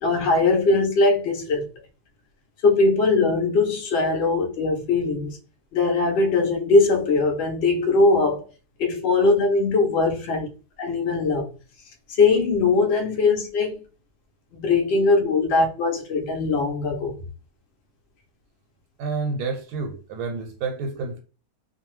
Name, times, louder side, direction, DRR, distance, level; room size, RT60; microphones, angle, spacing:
voice 1, 0.0-1.6 2.6-5.4 5.7-8.4 8.8-10.5 10.8-11.4 12.1-13.8 14.5-17.2, left 3 dB, 55° left, 0.8 m, -20 dB
voice 2, 19.0-21.2, right 4 dB, 90° right, 1.2 m, -29 dB
2.6 x 2.3 x 3.1 m
omnidirectional pair, 1.7 m